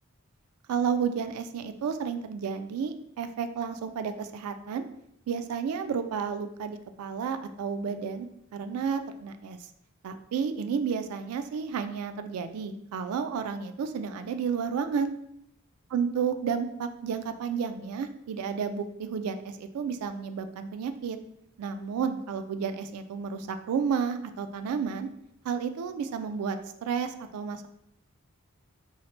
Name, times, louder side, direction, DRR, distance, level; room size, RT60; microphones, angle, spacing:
voice 1, 0.7-4.8 5.3-8.3 8.5-9.6 10.0-15.1 15.9-21.2 21.6-25.1 25.4-27.7, right 6 dB, 85° right, 9 dB, 0.3 m, -31 dB
2.8 x 2.1 x 4.1 m, 0.77 s
head